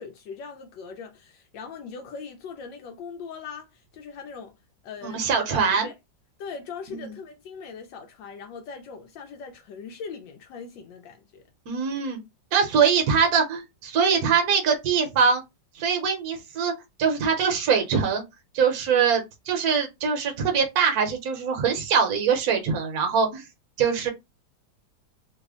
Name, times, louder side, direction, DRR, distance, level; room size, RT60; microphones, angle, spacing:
voice 1, 0.0-4.6 4.8-5.2 5.5-5.9 6.4-11.4, left 5 dB, 80° left, 1.3 m, -40 dB
voice 2, 5.0-5.9 6.9-7.1 11.7-12.2 12.5-15.4 15.7-16.7 17.0-18.2 18.5-23.5 23.8-24.1, right 6 dB, 60° right, 1.2 m, -23 dB
3.3 x 2.0 x 3.6 m
omnidirectional pair, 2.0 m